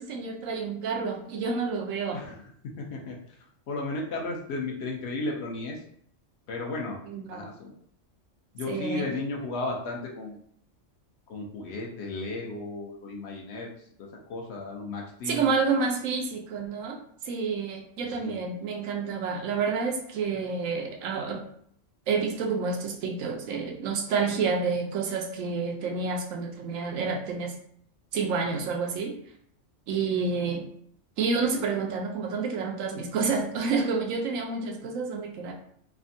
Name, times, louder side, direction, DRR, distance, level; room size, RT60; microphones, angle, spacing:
voice 1, 0.0-2.2 7.1-7.5 8.7-9.1 15.3-17.0 17.2-21.4 22.1-27.5 28.1-29.1 29.9-30.7 31.2-35.5, right 4 dB, 90° right, 2 dB, 1.0 m, -29 dB
voice 2, 2.1-3.2 3.7-5.8 6.5-7.0 7.3-7.7 8.5-10.4 11.3-13.7 14.0-15.5 18.1-18.4, left 2 dB, 65° left, -1 dB, 0.8 m, -34 dB
3.3 x 2.1 x 2.6 m, 0.64 s
omnidirectional pair, 1.3 m